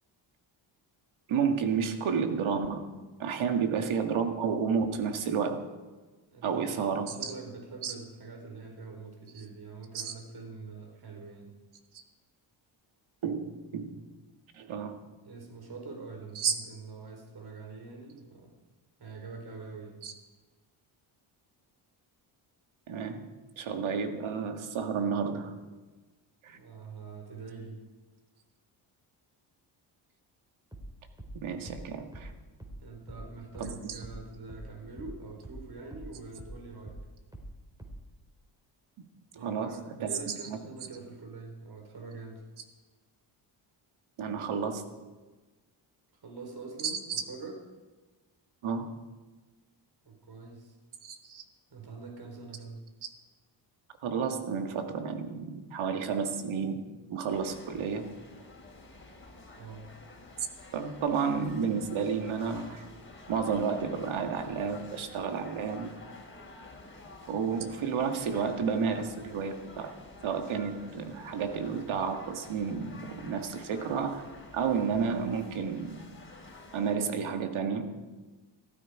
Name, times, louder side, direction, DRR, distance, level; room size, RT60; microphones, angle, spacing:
voice 1, 1.3-2.9 3.2-5.6 6.4-7.3 7.8-7.9 9.4-9.5 9.9-10.1 13.2-13.9 14.5-15.0 16.3-16.6 20.0-20.1 22.9-23.3 23.6-25.5 26.4-26.6 31.3-32.3 33.6-34.0 39.3-40.6 44.2-44.8 46.8-47.2 48.6-49.0 51.0-51.4 54.0-56.8 57.1-58.1 60.7-62.9 63.3-65.9 67.3-70.0 70.2-74.2 74.5-76.0 76.7-77.9, right 6 dB, 75° right, 6 dB, 2.1 m, -31 dB
voice 2, 6.3-6.8 7.1-11.5 15.2-18.6 19.0-20.0 26.4-27.8 32.8-37.0 39.3-42.4 46.2-47.6 50.0-50.7 51.7-52.8 59.6-59.9, right 4 dB, 50° right, 2 dB, 4.4 m, -44 dB
sound 1, 30.7-35.7 35.9-38.2, right 1 dB, 10° right, 4.5 m, -45 dB
sound 2, 57.3-77.0, left 2 dB, 25° left, 4.3 m, -50 dB
17.0 x 15.0 x 5.0 m, 1.3 s
cardioid pair, 70°, 49 cm